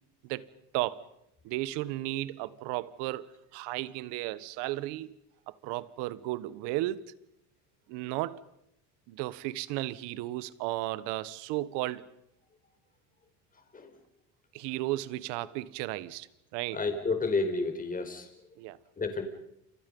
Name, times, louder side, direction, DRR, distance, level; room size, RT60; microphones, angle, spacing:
voice 1, 1.4-3.3 3.5-5.1 5.5-7.1 7.9-8.4 9.1-12.1 14.5-16.8 18.6-18.8, right 17 dB, 75° right, 1.4 m, -34 dB
voice 2, 16.7-18.3 19.0-19.2, left 3 dB, 20° left, 4.8 m, -30 dB
29.5 x 27.5 x 5.5 m
cardioid pair, 135°, 42 cm